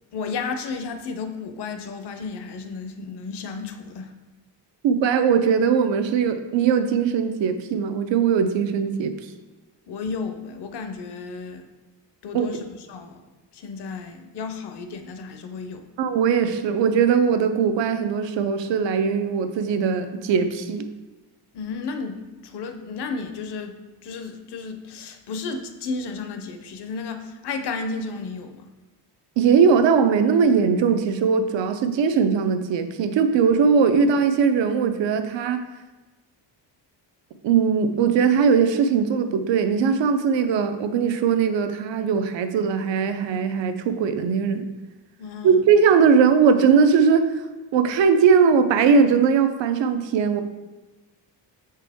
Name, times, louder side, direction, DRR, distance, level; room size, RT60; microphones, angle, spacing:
voice 1, 0.1-4.1 9.9-11.6 12.2-13.2 13.5-15.9 21.5-23.7 24.0-28.7 45.2-45.7, left 4 dB, 65° left, 7 dB, 0.7 m, -33 dB
voice 2, 4.8-9.2 12.3-12.6 16.0-20.9 29.4-35.6 37.4-44.7 45.4-47.3 47.7-50.4, right 6 dB, 80° right, 9 dB, 0.7 m, -20 dB
6.7 x 4.5 x 3.5 m, 1.2 s
wide cardioid pair, 155°, 44 cm